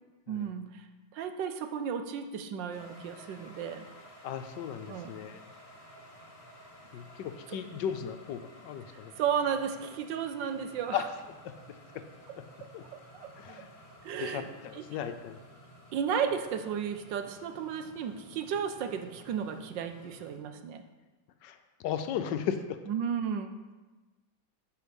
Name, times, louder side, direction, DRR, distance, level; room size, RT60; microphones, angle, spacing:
voice 1, 0.3-0.9 1.1-3.9 4.9-5.1 7.5-7.6 9.2-11.0 12.9-13.6 14.0-14.5 14.7-14.8 15.9-20.8 22.9-23.7, right 7 dB, 80° right, 8 dB, 1.4 m, -34 dB
sound 1, 2.7-20.4, equal, 25° left, 0.9 m, -54 dB
voice 2, 4.2-5.4 6.9-9.1 10.9-11.1 11.4-12.0 12.4-12.5 12.7-12.8 13.3-13.7 14.2-15.4 21.4-22.8, left 8 dB, 75° left, 9 dB, 1.3 m, -36 dB
9.3 x 5.4 x 5.3 m, 1.2 s
omnidirectional pair, 2.0 m